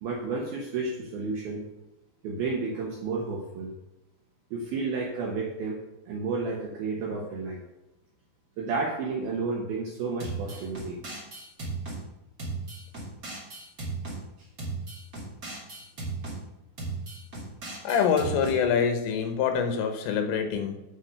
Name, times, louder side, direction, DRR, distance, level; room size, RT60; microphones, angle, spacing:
voice 1, 0.0-1.7 2.2-3.7 4.5-7.6 8.6-11.0, right 4 dB, 75° right, 0 dB, 2.3 m, -31 dB
sound 1, 10.2-12.0 12.4-14.2 14.6-16.4 16.8-18.6, right 3 dB, 25° right, 2.4 m, -36 dB
voice 2, 17.9-20.8, left 7 dB, 80° left, 6 dB, 3.7 m, -25 dB
10.0 x 6.6 x 6.8 m, 0.94 s
omnidirectional pair, 5.8 m